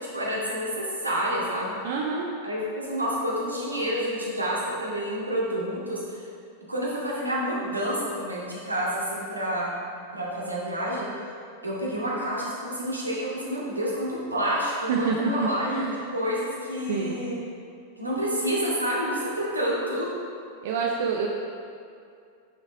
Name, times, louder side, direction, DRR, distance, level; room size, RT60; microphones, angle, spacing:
voice 1, 0.1-1.7 2.4-6.2 6.7-9.7 10.1-11.1 11.6-15.9 16.1-17.4 18.0-20.1, equal, 85° right, -5 dB, 2.0 m, -28 dB
voice 2, 1.8-2.3 14.9-16.0 16.9-17.2 20.6-21.3, right 5 dB, 55° right, 0 dB, 0.7 m, -27 dB
10.5 x 6.6 x 3.5 m, 2.4 s
figure-of-eight pair, 90°, 0 cm